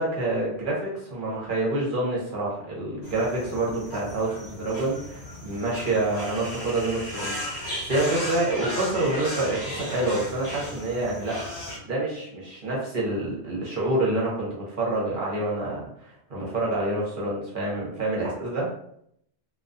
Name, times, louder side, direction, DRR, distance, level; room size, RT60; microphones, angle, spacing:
voice 1, 0.0-11.4 11.8-18.7, right 2 dB, 55° right, -4 dB, 0.9 m, -27 dB
sound 1, 3.0-11.8, left 1 dB, 50° left, 1.1 m, -35 dB
2.3 x 2.3 x 2.5 m, 0.71 s
omnidirectional pair, 1.1 m